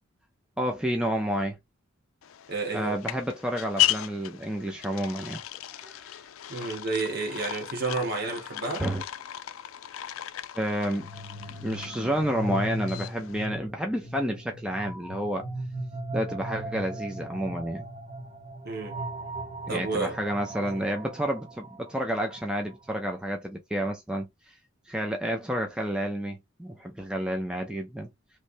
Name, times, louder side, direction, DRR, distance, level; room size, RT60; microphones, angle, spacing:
voice 1, 0.6-1.6 2.7-5.4 5.7-6.2 8.8-9.0 10.5-11.1 11.5-15.6 16.1-17.9 19.7-24.5 24.9-28.1, equal, 5° right, 0.5 m, -30 dB
sound 1, 2.2-13.5, left 13 dB, 85° left, 0.4 m, -35 dB
voice 2, 2.5-3.0 6.5-8.9 18.6-18.9 19.7-20.2 20.6-20.9, right 3 dB, 50° right, 1.3 m, -31 dB
sound 2, 10.8-22.7, right 1 dB, 30° right, 1.4 m, -38 dB
3.2 x 3.2 x 2.6 m
head